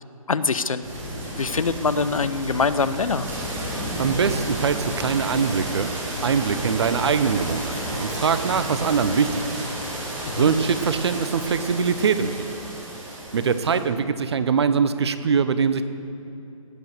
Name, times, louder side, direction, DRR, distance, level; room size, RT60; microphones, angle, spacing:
voice 1, 0.3-0.8 1.4-3.3 10.3-10.5, left 4 dB, 70° left, 13 dB, 0.8 m, -24 dB
sound 1, 0.8-13.8, right 1 dB, 15° right, 3.1 m, -32 dB
voice 2, 4.0-5.9 6.2-9.5 10.3-12.5 13.3-15.8, right 6 dB, 50° right, 11 dB, 0.8 m, -22 dB
17.5 x 9.0 x 6.6 m, 2.7 s
figure-of-eight pair, 140°, 18 cm